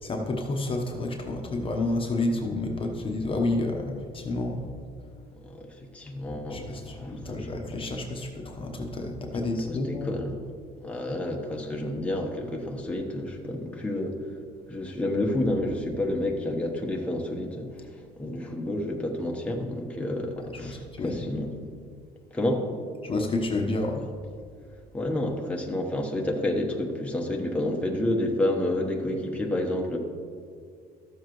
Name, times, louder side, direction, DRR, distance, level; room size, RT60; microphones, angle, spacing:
voice 1, 0.0-4.7 5.2-5.3 6.0-10.1 20.4-21.2 23.0-24.1, left 2 dB, 30° left, 2 dB, 1.0 m, -30 dB
voice 2, 5.9-7.4 9.7-10.3 10.8-14.2 14.7-17.7 18.2-21.5 22.3-22.6 24.9-30.0, left 1 dB, 5° left, 0 dB, 1.1 m, -29 dB
13.0 x 7.3 x 3.1 m, 2.1 s
cardioid pair, 110°, 17 cm